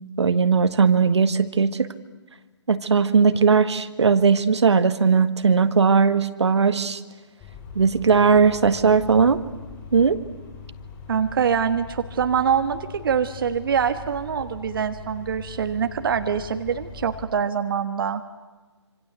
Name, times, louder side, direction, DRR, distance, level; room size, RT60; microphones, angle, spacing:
voice 1, 0.2-1.9 2.7-7.0 7.7-9.4 9.9-10.2, right 5 dB, 65° right, 11 dB, 1.7 m, -18 dB
sound 1, 7.4-17.3, left 5 dB, 20° left, 6.4 m, -41 dB
voice 2, 11.1-18.2, right 7 dB, 50° right, 8 dB, 1.4 m, -24 dB
26.5 x 26.5 x 8.0 m, 1.3 s
figure-of-eight pair, 150°, 15 cm